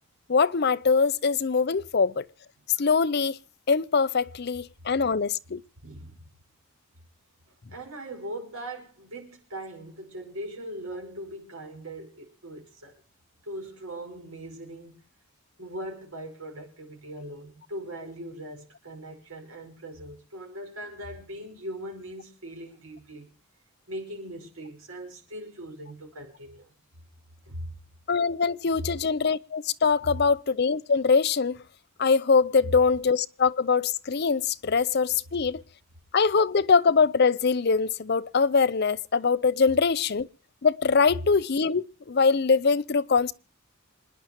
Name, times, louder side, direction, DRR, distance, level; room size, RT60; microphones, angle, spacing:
voice 1, 0.3-2.2 2.8-3.4 3.7-5.6 28.1-31.6 32.0-35.6 36.1-40.3 40.6-43.3, left 5 dB, 50° left, 0.6 m, -23 dB
voice 2, 5.8-6.2 7.7-12.9 13.4-15.0 15.6-23.3 23.9-26.7 27.5-27.7 28.8-28.9 32.6-32.7, right 1 dB, 85° right, 5.2 m, -40 dB
27.0 x 10.5 x 3.0 m
head